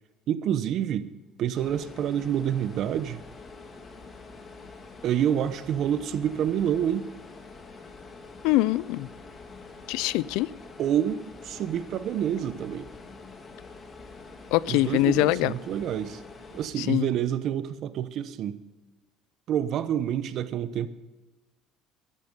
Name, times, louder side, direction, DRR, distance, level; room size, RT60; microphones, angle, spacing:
voice 1, 0.3-1.1 1.4-3.2 5.0-7.1 10.8-12.9 14.7-16.2 16.5-18.6 19.5-20.9, right 10 dB, 60° right, 1.0 m, -28 dB
sound 1, 1.5-16.7, left 3 dB, 30° left, 2.7 m, -46 dB
voice 2, 8.4-9.1 9.9-10.5 14.5-15.5 16.8-17.1, left 17 dB, 80° left, 0.4 m, -23 dB
14.0 x 12.5 x 5.4 m
supercardioid pair, 100°, 0 cm